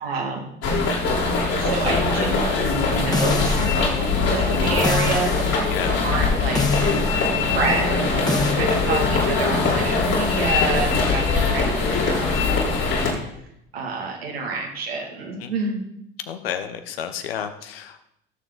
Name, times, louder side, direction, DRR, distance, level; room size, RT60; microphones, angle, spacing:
voice 1, 0.0-0.4 1.6-7.0 7.4-12.9 13.7-15.9, right 3 dB, 85° right, -1 dB, 2.4 m, -28 dB
sound 1, 0.6-13.1, left 4 dB, 60° left, 3.9 m, -22 dB
sound 2, 3.1-3.9 4.8-5.5 6.6-7.1 8.3-8.6, left 3 dB, 15° left, 1.7 m, -25 dB
voice 2, 16.3-18.0, left 9 dB, 80° left, 8 dB, 1.1 m, -31 dB
19.0 x 7.0 x 4.0 m, 0.77 s
figure-of-eight pair, 60°, 30 cm